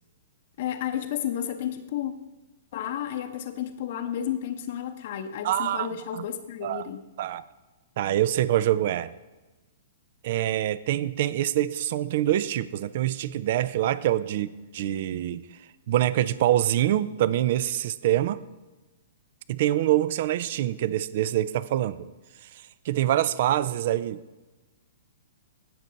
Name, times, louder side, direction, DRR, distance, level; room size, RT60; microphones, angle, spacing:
voice 1, 0.6-2.1 2.7-7.1, left 10 dB, 55° left, 5 dB, 0.8 m, -32 dB
voice 2, 5.4-5.9 6.1-6.2 6.6-6.9 7.2-7.4 8.0-9.1 10.2-15.4 15.9-18.4 19.5-22.1 22.5-24.2, right 13 dB, 50° right, 17 dB, 0.5 m, -25 dB
16.5 x 6.3 x 4.0 m, 1.1 s
figure-of-eight pair, 115°, 0 cm